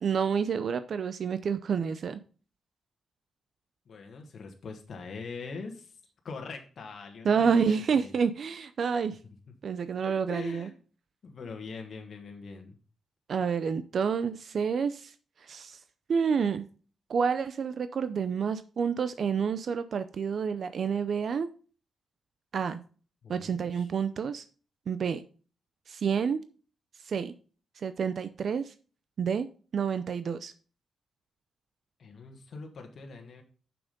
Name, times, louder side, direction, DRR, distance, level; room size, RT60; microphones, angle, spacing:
voice 1, 0.0-2.2 7.2-9.2 9.6-10.7 13.3-15.1 15.4-15.8 16.1-16.7 17.1-21.5 22.5-22.8 23.3-24.4 24.9-25.2 25.9-26.4 27.0-27.3 27.8-28.7 29.2-29.5 29.7-30.5, right 6 dB, 60° right, 0.5 m, -29 dB
voice 2, 3.9-5.9 6.2-8.2 10.1-10.7 11.2-12.8 23.2-23.9 32.0-33.4, left 4 dB, 55° left, 1.4 m, -43 dB
7.0 x 6.0 x 5.2 m
cardioid pair, 110°, 0 cm